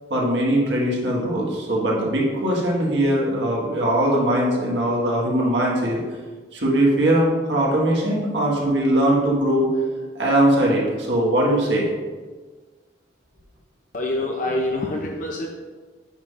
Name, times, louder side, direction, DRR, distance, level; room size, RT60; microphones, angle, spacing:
voice 1, 0.1-6.0 6.5-9.7 10.2-11.9, right 1 dB, 75° right, -4 dB, 1.6 m, -20 dB
voice 2, 13.9-15.5, left 1 dB, 45° left, 0 dB, 0.5 m, -25 dB
9.1 x 5.6 x 2.5 m, 1.4 s
head